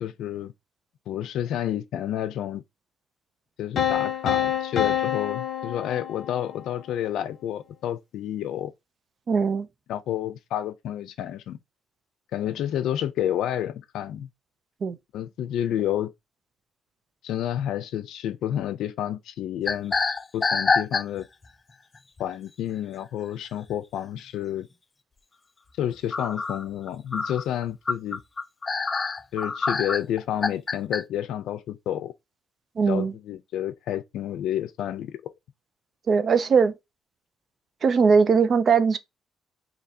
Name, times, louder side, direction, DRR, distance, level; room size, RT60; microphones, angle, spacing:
voice 1, 0.0-0.5 1.1-2.6 3.6-8.7 9.9-11.6 12.3-14.3 15.1-16.1 17.2-20.0 20.3-21.3 22.2-24.7 25.8-28.2 29.3-32.1 32.9-35.3, left 11 dB, 90° left, 0.4 m, -30 dB
sound 1, 3.8-6.7, left 9 dB, 55° left, 0.9 m, -27 dB
voice 2, 9.3-9.7 14.8-15.0 32.8-33.1 36.1-36.7 37.8-39.0, right 5 dB, 40° right, 0.4 m, -20 dB
sound 2, 19.7-21.4 22.0-22.2 23.7-23.8 24.2-24.3 26.1-31.0, left 4 dB, 25° left, 0.4 m, -26 dB
2.8 x 2.7 x 4.0 m
cardioid pair, 150°, 0 cm